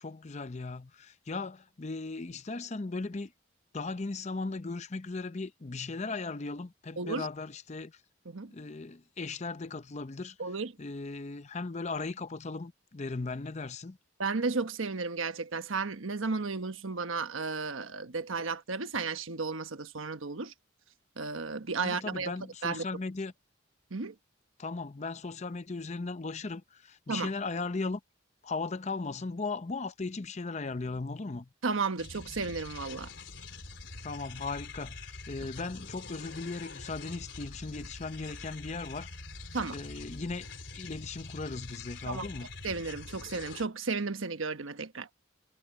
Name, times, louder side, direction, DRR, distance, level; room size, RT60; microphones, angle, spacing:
voice 1, 0.0-3.3 3.7-7.9 8.5-10.4 10.8-14.0 21.8-23.3 24.6-28.0 28.4-31.5 34.0-39.1 39.7-40.5 40.7-42.5, left 3 dB, 35° left, 0.6 m, -37 dB
voice 2, 7.0-7.3 8.2-8.5 10.4-10.7 14.2-20.5 21.2-22.3 22.6-22.8 23.9-24.1 27.1-27.3 31.6-33.1 39.5-39.8 42.0-42.3 42.6-45.1, right 4 dB, 85° right, 1.2 m, -33 dB
sound 1, 32.0-43.7, left 3 dB, 65° left, 4.6 m, -45 dB
head